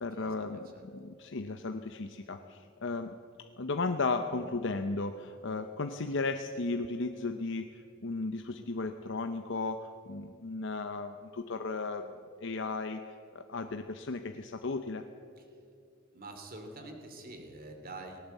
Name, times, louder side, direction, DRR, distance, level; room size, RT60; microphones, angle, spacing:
voice 1, 0.0-3.1 3.6-12.1 12.4-13.0 13.3-15.0, left 3 dB, 65° left, 7 dB, 0.8 m, -35 dB
voice 2, 16.1-18.2, right 2 dB, 45° right, 5 dB, 3.0 m, -46 dB
19.0 x 17.0 x 8.2 m, 2.5 s
head